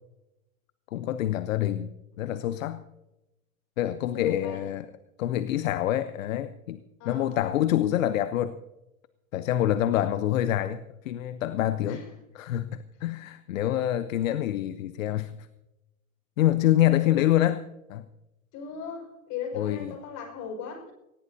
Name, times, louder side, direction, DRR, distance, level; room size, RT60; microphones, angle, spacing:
voice 1, 0.9-2.8 3.8-4.9 5.2-6.8 7.0-8.5 9.3-12.0 12.4-15.3 16.4-17.6 17.9-18.0 19.5-19.9, left 12 dB, 65° left, 13 dB, 1.0 m, -26 dB
voice 2, 4.1-4.7 7.0-7.4 11.9-12.1 17.0-17.2 18.5-20.9, left 7 dB, 45° left, 4 dB, 5.6 m, -37 dB
19.0 x 19.0 x 2.8 m, 0.95 s
hypercardioid pair, 110°, 42 cm